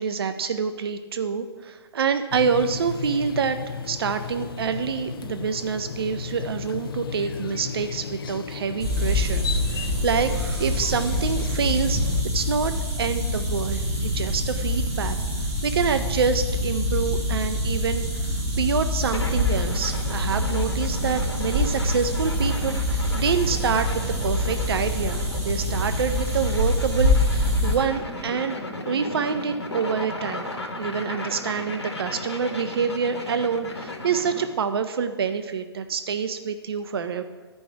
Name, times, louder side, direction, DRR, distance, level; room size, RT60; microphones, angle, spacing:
voice 1, 0.0-3.6 3.8-12.0 12.3-12.7 13.0-15.2 15.6-18.0 18.6-23.9 24.2-28.6 28.8-30.5 30.8-37.2, right 6 dB, 60° right, 9 dB, 0.5 m, -26 dB
sound 1, 2.3-12.2, left 6 dB, 55° left, 0.5 m, -34 dB
sound 2, 8.8-27.7, left 1 dB, 40° right, 2.5 m, -25 dB
sound 3, 19.1-34.5, left 2 dB, 75° left, 1.3 m, -35 dB
12.5 x 5.3 x 4.6 m, 1.4 s
figure-of-eight pair, 125°, 14 cm